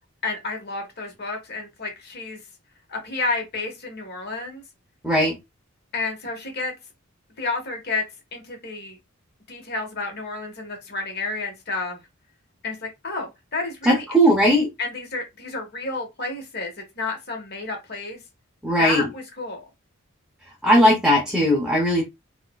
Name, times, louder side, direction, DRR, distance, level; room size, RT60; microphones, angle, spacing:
voice 1, 0.2-2.4 2.9-4.6 5.9-6.7 7.4-8.0 8.3-9.0 9.5-12.0 12.6-18.2 18.8-19.6, left 3 dB, 50° left, 1.1 m, -31 dB
voice 2, 5.0-5.4 13.9-14.7 18.6-19.0 20.6-22.0, equal, 5° right, 0.6 m, -18 dB
4.1 x 2.5 x 2.2 m
head